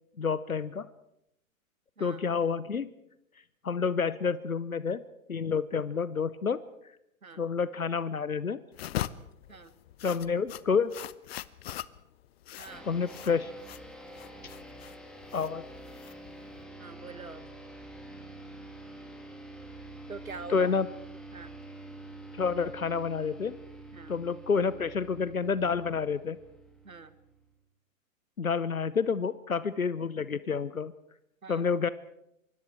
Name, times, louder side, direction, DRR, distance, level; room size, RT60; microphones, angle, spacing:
voice 1, 0.2-0.9 2.0-2.9 3.6-5.0 5.3-6.6 7.4-8.6 10.0-10.9 12.8-13.5 15.3-15.6 20.5-20.9 22.3-23.6 24.1-26.4 28.4-30.9 31.5-31.9, left 5 dB, 85° left, 17 dB, 0.8 m, -29 dB
sound 1, 8.7-16.6, left 13 dB, 50° left, 0.8 m, -41 dB
sound 2, 12.7-27.5, right 2 dB, ahead, 2.9 m, -47 dB
voice 2, 16.8-17.4 20.1-20.7 21.3-21.6 23.9-24.2 26.8-27.1 31.4-31.7, right 4 dB, 80° right, 14 dB, 1.6 m, -44 dB
25.0 x 23.0 x 4.6 m, 0.79 s
figure-of-eight pair, 105°, 41 cm